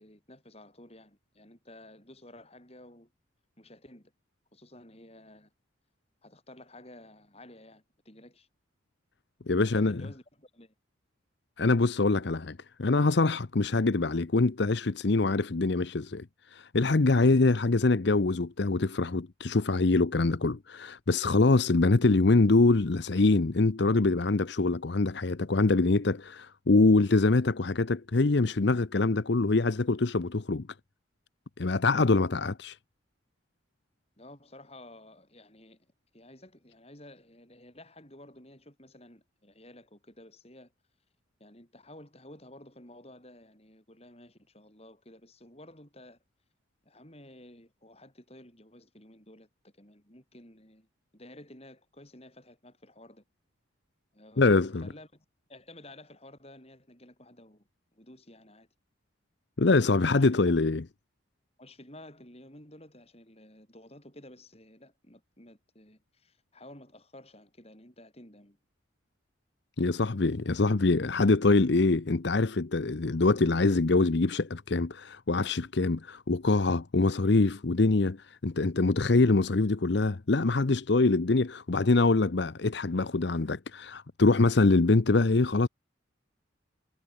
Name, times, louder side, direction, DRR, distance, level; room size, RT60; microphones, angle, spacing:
voice 1, 0.0-3.1 3.6-4.1 4.5-5.5 6.2-8.5 9.5-10.7 34.2-35.9 36.1-40.7 41.4-46.2 46.8-50.9 51.1-53.2 54.1-54.6 54.8-58.7 59.9-60.8 61.6-68.6, left 1 dB, 30° left, 6.5 m, -52 dB
voice 2, 9.5-10.0 11.6-30.7 31.6-32.8 54.4-54.9 59.6-60.8 69.8-85.7, left 3 dB, 55° left, 0.7 m, -24 dB
head